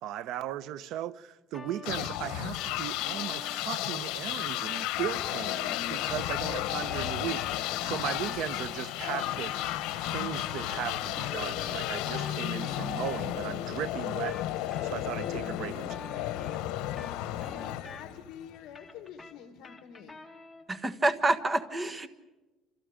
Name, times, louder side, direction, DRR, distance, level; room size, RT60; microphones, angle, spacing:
voice 1, 0.0-9.5 10.0-16.1, right 11 dB, 65° right, 0.8 m, -37 dB
sound 1, 1.5-3.6 4.4-8.7 9.0-13.2 14.0-18.3 18.6-20.7, left 3 dB, 10° left, 2.2 m, -48 dB
sound 2, 1.8-18.6, left 13 dB, 85° left, 1.2 m, -33 dB
sound 3, 2.8-20.2, left 5 dB, 40° left, 2.3 m, -55 dB
voice 2, 17.4-20.2, left 9 dB, 60° left, 2.0 m, -47 dB
voice 3, 20.7-22.1, right 2 dB, 15° right, 1.5 m, -27 dB
29.0 x 28.0 x 5.1 m
cardioid pair, 155°, 0 cm